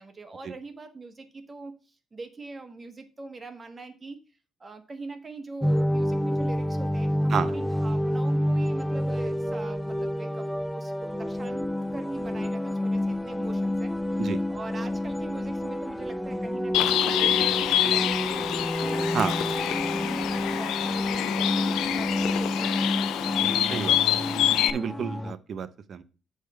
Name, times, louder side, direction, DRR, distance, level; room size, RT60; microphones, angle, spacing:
voice 1, 0.0-4.2 4.6-11.6 11.9-14.2 14.5-19.7 20.0-23.4, right 3 dB, 30° right, 7 dB, 1.3 m, -42 dB
sound 1, 5.6-25.3, left 1 dB, 5° left, 0.3 m, -29 dB
Bird, 16.7-24.7, left 12 dB, 85° left, 0.4 m, -26 dB
voice 2, 23.7-24.0 24.7-26.0, right 7 dB, 55° right, 14 dB, 0.7 m, -30 dB
8.0 x 3.4 x 5.9 m, 0.34 s
cardioid pair, 90°, 0 cm